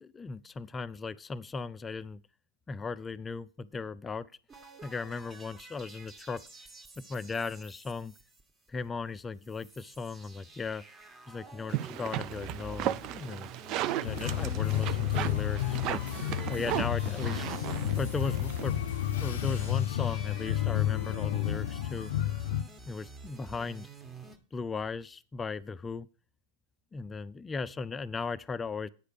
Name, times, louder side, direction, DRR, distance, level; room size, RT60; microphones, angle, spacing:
voice 1, 0.0-2.2 2.7-4.3 4.8-6.4 7.0-8.1 8.7-10.8 11.3-13.5 14.0-16.0 16.5-17.5 18.0-18.8 19.2-22.1 22.9-23.9 24.5-26.1 26.9-28.9, left 4 dB, 15° left, 0.5 m, -37 dB
sound 1, 4.5-8.9 9.2-9.3 9.4-24.4, right 3 dB, 25° right, 1.5 m, -50 dB
sound 2, 11.7-19.7, right 12 dB, 45° right, 0.4 m, -36 dB
sound 3, 14.0-22.6, left 12 dB, 75° left, 0.5 m, -31 dB
9.0 x 5.0 x 6.7 m
hypercardioid pair, 110°, 0 cm